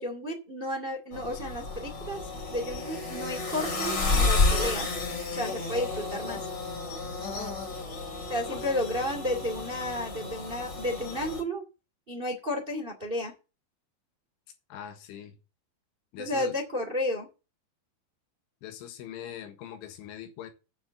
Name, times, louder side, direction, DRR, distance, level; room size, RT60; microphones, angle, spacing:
voice 1, 0.0-4.9 5.3-6.5 8.3-11.6 12.1-13.3 16.2-17.3, left 1 dB, 60° right, 0.5 m, -32 dB
sound 1, 1.1-11.4, left 3 dB, 30° left, 2.3 m, -31 dB
voice 2, 14.7-15.4 16.1-16.6 18.6-20.5, left 10 dB, 80° left, 4.0 m, -42 dB
8.7 x 7.1 x 7.6 m
omnidirectional pair, 5.6 m